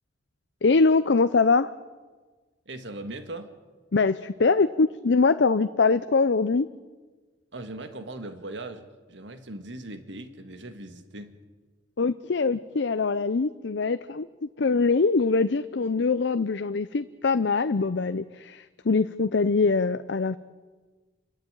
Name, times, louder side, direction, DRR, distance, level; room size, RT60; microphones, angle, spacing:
voice 1, 0.6-1.7 3.9-6.7 12.0-20.4, left 4 dB, 75° left, 12 dB, 0.6 m, -23 dB
voice 2, 2.7-3.5 7.5-11.4, right 2 dB, 80° right, 7 dB, 1.8 m, -39 dB
28.5 x 12.5 x 9.0 m, 1.4 s
head